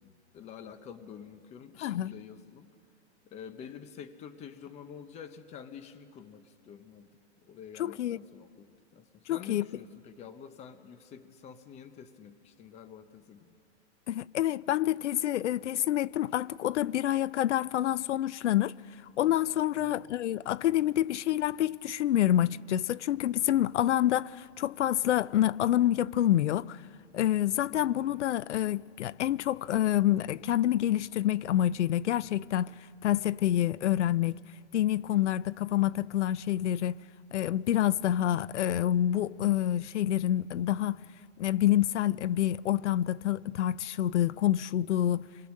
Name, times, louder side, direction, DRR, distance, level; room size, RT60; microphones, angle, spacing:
voice 1, 0.0-2.7 3.2-7.1 7.4-13.5 19.7-20.1 27.9-28.3, left 7 dB, 20° left, 0.9 m, -48 dB
voice 2, 1.8-2.1 7.8-8.2 9.3-9.7 14.1-18.7 19.2-26.8 27.1-32.7 33.0-34.4 34.7-37.0 37.3-41.0 41.4-45.3, left 12 dB, 90° left, 0.6 m, -27 dB
27.5 x 22.5 x 6.5 m
hypercardioid pair, 145°, 34 cm